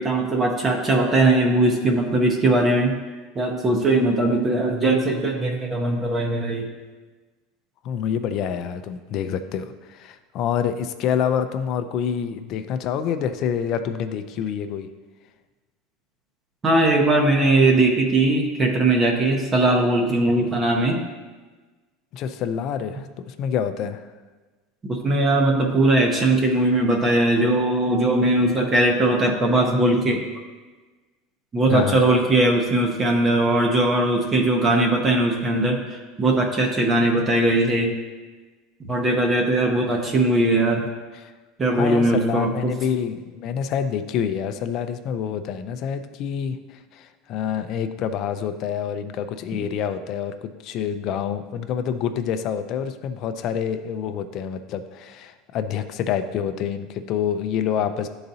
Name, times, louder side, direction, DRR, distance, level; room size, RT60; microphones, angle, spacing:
voice 1, 0.0-2.9 3.3-6.7 16.6-21.0 24.9-30.2 31.5-37.9 38.9-40.9 41.6-42.7, right 2 dB, 20° right, 2 dB, 0.7 m, -20 dB
voice 2, 7.8-14.9 22.1-24.1 31.7-32.0 41.2-41.3 41.7-58.1, left 8 dB, 45° left, 9 dB, 0.4 m, -27 dB
11.5 x 3.9 x 2.7 m, 1.3 s
supercardioid pair, 150°, 0 cm